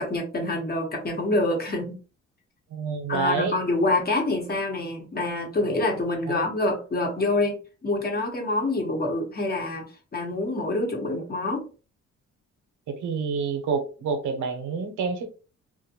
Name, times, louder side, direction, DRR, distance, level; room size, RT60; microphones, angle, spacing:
voice 1, 0.0-2.0 3.1-9.9 10.1-11.6, left 2 dB, 30° left, 0.9 m, -26 dB
voice 2, 2.7-3.6 6.3-6.4 12.9-15.3, right 5 dB, 80° right, 0.7 m, -28 dB
2.5 x 2.1 x 2.8 m
cardioid pair, 90°, 30 cm